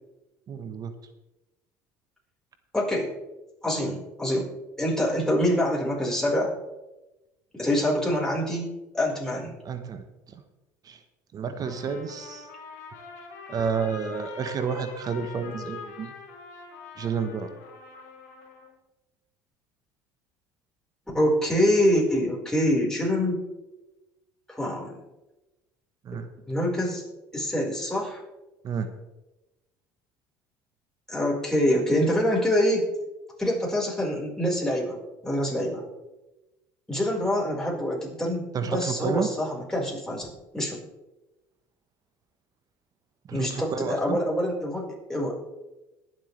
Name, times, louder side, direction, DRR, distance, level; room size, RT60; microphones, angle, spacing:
voice 1, 0.5-0.9 9.6-10.4 10.8-11.0 11.3-12.5 13.5-16.1 17.0-17.5 26.0-26.3 28.6-28.9 38.5-39.3 43.3-44.2, right 6 dB, 45° right, 9 dB, 1.3 m, -30 dB
voice 2, 2.7-3.1 3.6-4.5 4.8-6.5 7.5-8.7 8.9-9.5 21.1-23.4 24.5-25.0 26.5-27.0 27.3-28.2 31.1-32.8 33.4-35.0 35.2-35.8 36.9-40.8 43.3-45.3, equal, 5° left, -4 dB, 4.9 m, -25 dB
Trumpet, 11.6-18.7, left 4 dB, 85° left, 2.7 m, -44 dB
21.0 x 7.7 x 3.4 m, 1.0 s
hypercardioid pair, 70°, 9 cm